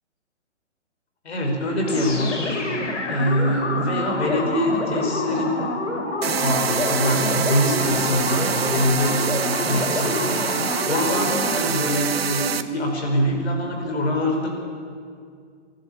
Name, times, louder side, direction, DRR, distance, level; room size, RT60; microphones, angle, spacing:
voice 1, 1.2-2.6 3.1-5.6 6.3-9.3 9.6-10.4 10.8-14.5, left 1 dB, 60° left, 1 dB, 5.5 m, -24 dB
sound 1, 1.9-11.7, left 2 dB, 80° left, 3.7 m, -27 dB
sound 2, 6.2-12.6, right 7 dB, 55° right, 1.1 m, -26 dB
26.5 x 11.5 x 8.9 m, 2.2 s
hypercardioid pair, 170°, 36 cm